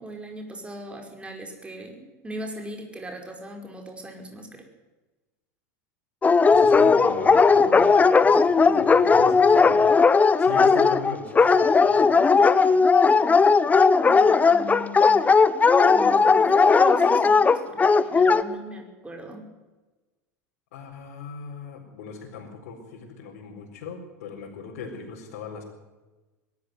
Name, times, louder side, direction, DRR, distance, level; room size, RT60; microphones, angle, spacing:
voice 1, 0.0-4.7 14.0-15.4 15.8-19.5, right 1 dB, 15° right, 3 dB, 5.3 m, -39 dB
Dog, 6.2-18.4, left 4 dB, 20° left, 1.0 m, -17 dB
voice 2, 6.5-9.9 10.4-12.1 20.7-25.6, left 5 dB, 70° left, -3 dB, 4.7 m, -38 dB
21.5 x 13.0 x 9.5 m, 1.2 s
hypercardioid pair, 95°, 8 cm